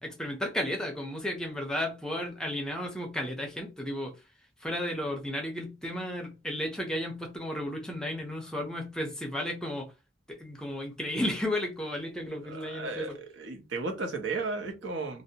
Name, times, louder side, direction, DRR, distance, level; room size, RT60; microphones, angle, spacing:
voice 1, 0.0-4.1 4.6-9.9 10.3-13.2, left 1 dB, 5° left, 0.5 m, -33 dB
voice 2, 12.4-15.2, right 3 dB, 80° right, 0.7 m, -34 dB
2.6 x 2.0 x 2.7 m
head